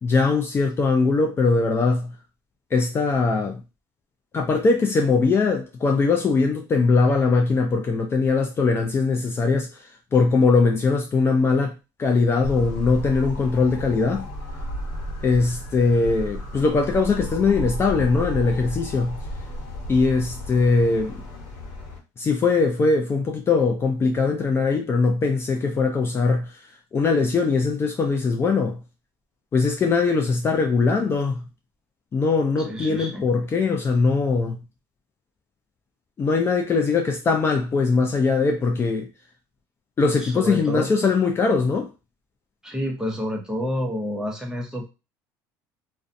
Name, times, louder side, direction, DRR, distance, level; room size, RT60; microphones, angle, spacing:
voice 1, 0.0-2.1 2.7-3.6 4.3-11.7 12.0-14.3 15.2-19.2 19.9-21.1 22.2-26.5 26.9-28.8 29.5-31.4 32.1-34.6 36.2-39.1 40.0-41.9, left 4 dB, 30° left, 0.4 m, -21 dB
sound 1, 12.4-22.0, equal, 75° left, 1.0 m, -33 dB
voice 2, 32.7-33.2 40.2-40.9 42.6-44.9, equal, 10° right, 0.8 m, -29 dB
2.4 x 2.2 x 2.5 m
supercardioid pair, 100°, 8 cm